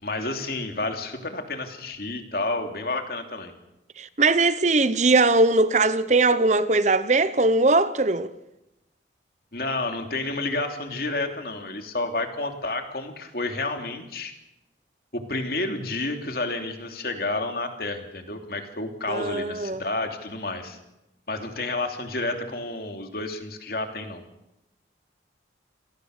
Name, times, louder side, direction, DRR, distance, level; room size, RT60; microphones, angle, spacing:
voice 1, 0.0-3.5 9.5-14.3 15.1-20.8 21.3-24.2, left 2 dB, 55° left, 2.9 m, -30 dB
voice 2, 4.0-8.3 19.1-19.8, right 3 dB, 40° right, 0.9 m, -20 dB
28.0 x 18.0 x 6.6 m
head